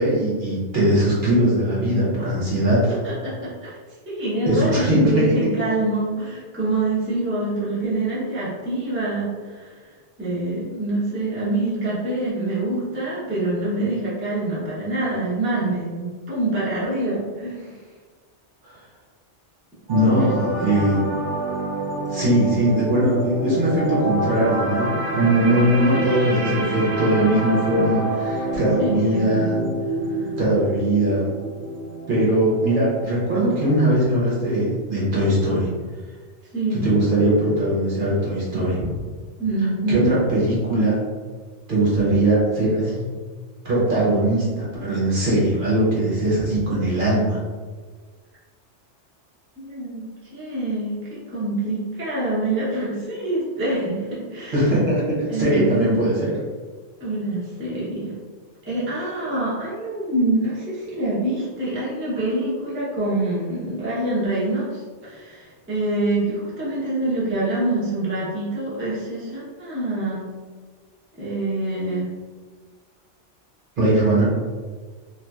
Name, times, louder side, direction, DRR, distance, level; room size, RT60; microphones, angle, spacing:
voice 1, 0.0-3.0 4.5-5.3 19.9-21.1 22.0-29.6 30.4-31.3 32.1-35.7 36.8-38.9 39.9-41.0 41.7-43.1 43.6-47.4 54.5-56.4 73.8-74.2, right 1 dB, 50° right, -7 dB, 0.9 m, -20 dB
voice 2, 3.0-3.8 4.1-9.9 10.2-17.8 20.0-20.3 20.5-20.8 28.4-29.4 30.1-30.3 36.5-36.8 39.4-40.1 49.6-54.9 55.3-56.0 57.0-58.1 58.7-70.3 71.2-72.1, right 2 dB, 15° right, -9 dB, 0.6 m, -26 dB
sound 1, 19.9-34.0 34.3-34.6, right 1 dB, 90° right, 0.9 m, -28 dB
2.8 x 2.4 x 2.3 m, 1.5 s
omnidirectional pair, 1.2 m